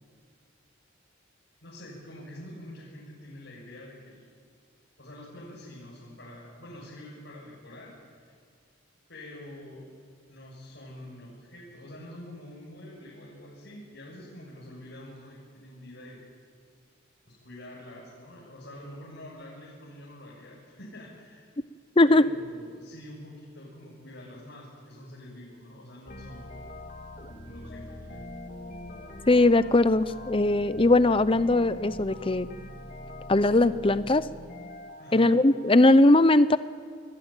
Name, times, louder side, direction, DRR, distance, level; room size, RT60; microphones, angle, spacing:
voice 1, 1.6-4.3 5.0-7.9 8.2-8.3 9.1-9.9 10.3-16.3 17.3-21.5 22.1-26.7 27.4-28.2 35.0-35.3, left 1 dB, 60° left, -5 dB, 7.4 m, -46 dB
sound 1, 26.1-35.9, left 1 dB, 40° left, 2.5 m, -43 dB
voice 2, 29.3-32.5 33.3-34.2 35.1-36.6, left 2 dB, 25° left, 14 dB, 0.7 m, -20 dB
28.5 x 22.0 x 9.1 m, 2.1 s
head